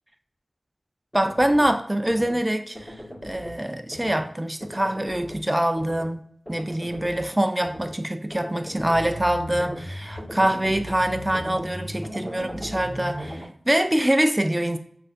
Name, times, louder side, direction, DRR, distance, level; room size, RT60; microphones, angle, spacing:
sound 1, 1.1-1.7 2.1-2.4 2.7-3.6 3.9-4.3 4.6-5.4 5.8-6.1 6.5-7.3 7.6-8.0 8.3-13.4, equal, 15° left, 1.5 m, -37 dB
voice 1, 1.1-3.0 3.2-6.2 6.5-14.8, right 1 dB, 20° right, 0.4 m, -24 dB
6.3 x 2.5 x 2.5 m
wide cardioid pair, 50°, 0 cm